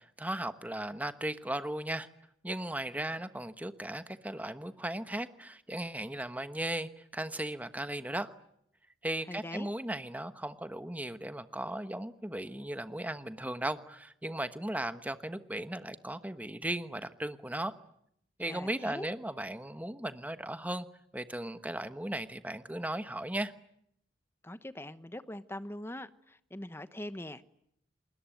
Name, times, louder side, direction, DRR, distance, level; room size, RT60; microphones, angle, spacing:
voice 1, 0.0-2.1 2.4-8.3 9.0-17.7 18.4-20.9 21.1-23.5, right 1 dB, 10° right, 1.2 m, -37 dB
voice 2, 9.3-9.7 18.4-19.1 24.4-27.5, left 1 dB, 15° left, 1.0 m, -42 dB
29.0 x 20.5 x 9.1 m
head